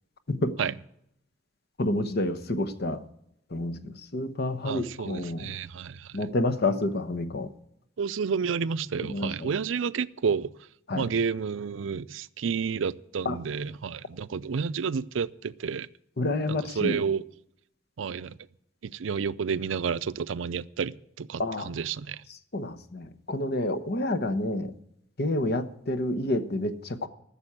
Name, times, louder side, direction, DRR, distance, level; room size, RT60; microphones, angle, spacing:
voice 1, 1.8-3.0 3.5-5.5 6.1-7.5 9.1-9.5 10.9-11.1 13.2-13.4 16.2-17.0 21.4-21.7 22.5-24.7 25.2-27.1, left 1 dB, 55° left, 1.0 m, -29 dB
voice 2, 4.6-6.2 8.0-10.5 10.9-15.9 16.5-17.2 18.0-18.3 18.8-22.2, right 6 dB, 90° right, 0.5 m, -30 dB
14.0 x 7.0 x 8.7 m
head